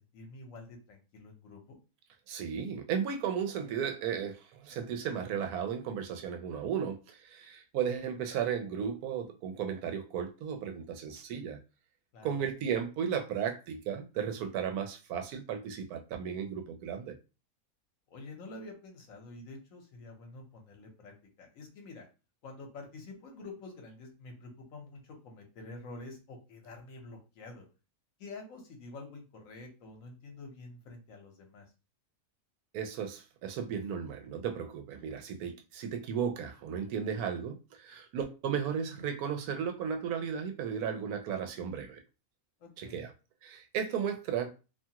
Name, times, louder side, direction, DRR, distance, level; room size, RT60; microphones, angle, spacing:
voice 1, 0.0-1.8 12.1-12.3 18.1-22.1 22.4-27.7 28.2-31.7 42.6-43.0, left 3 dB, 65° left, 1.1 m, -48 dB
voice 2, 2.3-11.6 12.2-17.1 32.7-42.0 42.8-43.1 43.4-44.5, right 7 dB, 90° right, 1.1 m, -35 dB
2.8 x 2.3 x 2.8 m
omnidirectional pair, 1.5 m